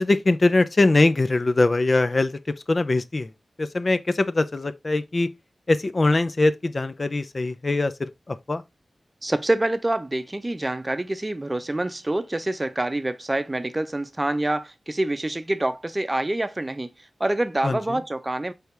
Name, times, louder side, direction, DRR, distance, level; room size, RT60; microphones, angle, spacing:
voice 1, 0.0-3.3 3.6-5.3 5.7-8.6 17.6-18.0, left 2 dB, 50° left, 0.5 m, -22 dB
voice 2, 9.2-16.9 17.2-18.5, right 1 dB, 30° right, 0.6 m, -26 dB
4.4 x 3.4 x 3.3 m
cardioid pair, 45°, 0 cm